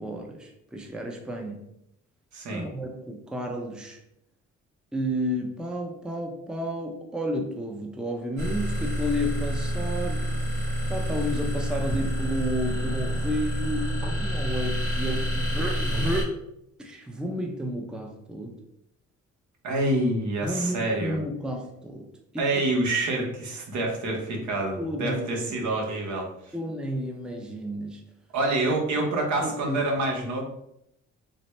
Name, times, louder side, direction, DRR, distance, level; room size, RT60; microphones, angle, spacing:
voice 1, 0.0-1.6 2.5-4.0 4.9-10.3 10.9-16.4 16.8-18.6 20.4-22.1 22.3-22.6 24.8-25.8 26.5-28.0 29.4-29.8, equal, 5° right, 2 dB, 0.5 m, -32 dB
voice 2, 2.3-2.7 19.6-21.2 22.4-26.5 28.3-30.4, right 2 dB, 70° right, 0 dB, 1.0 m, -27 dB
sound 1, 8.4-16.2, equal, 85° right, 1.5 m, -28 dB
4.0 x 2.1 x 3.1 m, 0.79 s
cardioid pair, 90°, 30 cm